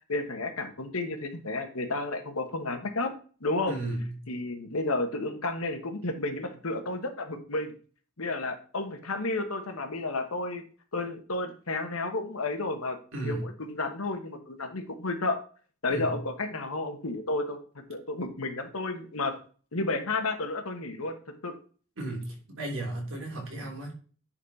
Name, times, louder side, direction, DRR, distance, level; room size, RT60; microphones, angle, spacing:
voice 1, 0.1-3.1 3.4-3.7 4.3-7.7 8.2-10.6 10.9-13.0 13.2-15.4 15.8-17.6 17.9-19.3 19.7-21.2 21.4-21.5, left 2 dB, 70° left, 6 dB, 1.3 m, -32 dB
voice 2, 3.7-4.2 13.1-13.5 15.9-16.2 22.0-23.9, right 1 dB, 65° right, 0 dB, 3.0 m, -34 dB
10.0 x 4.3 x 4.1 m, 0.40 s
head